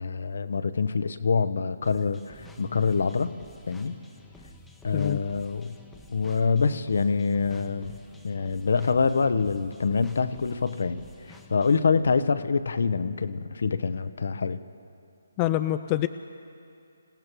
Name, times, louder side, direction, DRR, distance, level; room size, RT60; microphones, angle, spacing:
voice 1, 0.0-3.3 3.7-4.0 4.8-5.7 6.1-8.0 8.2-14.6, left 5 dB, 65° left, 12 dB, 0.7 m, -26 dB
sound 1, 1.8-11.9, left 2 dB, 5° left, 0.9 m, -49 dB
voice 2, 15.4-16.1, left 14 dB, 25° left, 10 dB, 0.3 m, -25 dB
26.5 x 16.5 x 3.0 m, 2.5 s
figure-of-eight pair, 150°, 0 cm